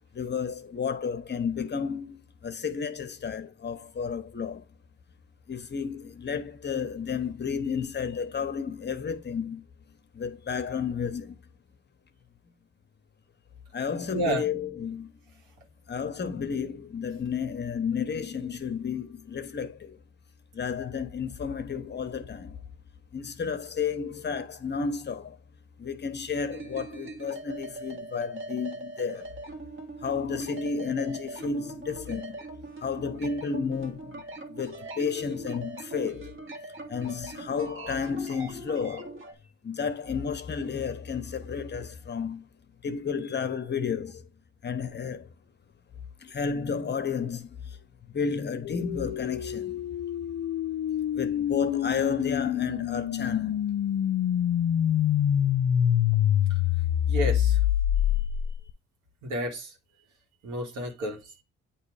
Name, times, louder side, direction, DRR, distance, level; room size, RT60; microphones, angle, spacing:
voice 1, 0.1-4.6 5.5-9.6 10.1-11.4 13.7-15.1 15.9-20.0 20.5-22.6 23.1-25.4 25.8-29.3 30.0-32.4 32.8-34.2 34.5-36.3 36.9-39.2 39.6-42.4 42.8-44.2 44.6-45.3 46.2-47.8 48.1-49.8 51.1-53.6, left 6 dB, 35° left, 0.9 m, -32 dB
voice 2, 14.1-14.4 56.5-56.6 57.1-57.6 58.1-58.6 59.2-59.8 60.4-61.4, right 1 dB, 85° right, 1.9 m, -32 dB
sound 1, 26.5-39.3, right 2 dB, 40° right, 1.7 m, -41 dB
sound 2, 48.6-58.7, left 10 dB, 55° left, 0.5 m, -26 dB
8.3 x 3.0 x 4.8 m
cardioid pair, 90°, 30 cm